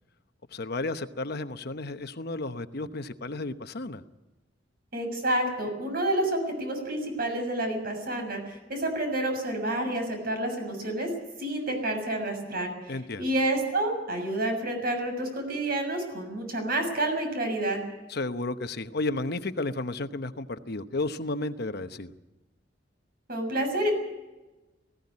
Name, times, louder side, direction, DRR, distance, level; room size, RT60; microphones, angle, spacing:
voice 1, 0.5-4.0 12.9-13.2 18.1-22.1, left 2 dB, 60° left, 9 dB, 1.0 m, -32 dB
voice 2, 4.9-11.1 11.4-17.8 23.3-23.9, right 1 dB, 55° right, 4 dB, 6.8 m, -29 dB
19.0 x 16.0 x 9.6 m, 1.1 s
head